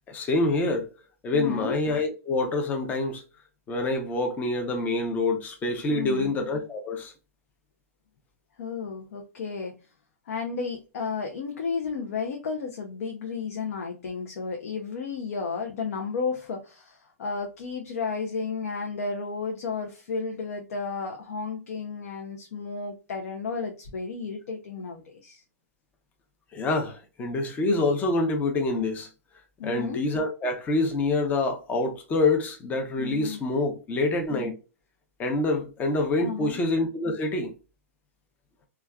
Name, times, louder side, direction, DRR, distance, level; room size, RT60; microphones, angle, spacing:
voice 1, 0.1-0.9 1.2-3.2 3.7-7.1 26.5-29.1 29.6-34.5 35.2-37.5, left 2 dB, 20° left, 0.6 m, -26 dB
voice 2, 1.3-1.8 5.9-6.3 8.6-9.7 10.3-25.4 29.6-30.0 33.0-33.4 36.1-36.6, left 5 dB, 70° left, 0.6 m, -33 dB
3.2 x 2.3 x 2.2 m
hypercardioid pair, 125°, 8 cm